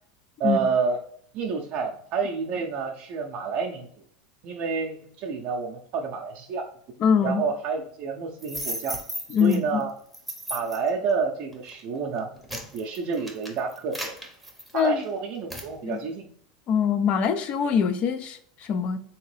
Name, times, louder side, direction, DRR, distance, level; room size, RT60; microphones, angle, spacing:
voice 1, 0.4-1.0 1.3-3.9 4.4-6.7 7.2-9.0 9.4-9.9 10.5-12.3 12.7-14.1 14.7-16.3, right 5 dB, 50° right, 1 dB, 0.5 m, -29 dB
voice 2, 7.0-7.4 9.3-9.8 14.7-15.0 15.8-16.0 16.7-19.0, left 7 dB, 40° left, 10 dB, 0.5 m, -23 dB
sound 1, 8.4-9.6 10.1-10.9 11.5-11.7 12.2-15.0 15.5-15.7, right 1 dB, ahead, 0.8 m, -35 dB
3.5 x 2.9 x 3.2 m, 0.62 s
supercardioid pair, 125°, 3 cm